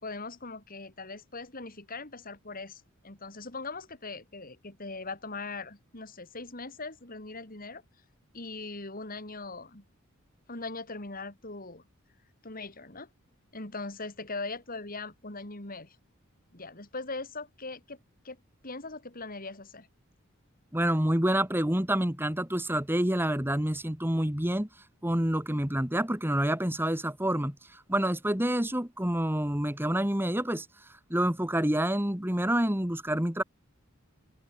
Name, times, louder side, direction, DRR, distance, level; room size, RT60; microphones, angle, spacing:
voice 1, 0.0-7.8 8.3-9.8 10.5-11.8 12.4-13.1 13.5-16.0 16.5-18.0 18.2-18.4 18.6-19.9, left 3 dB, 45° left, 4.1 m, -40 dB
voice 2, 20.7-24.7 25.0-33.4, right 1 dB, 10° right, 2.1 m, -28 dB
head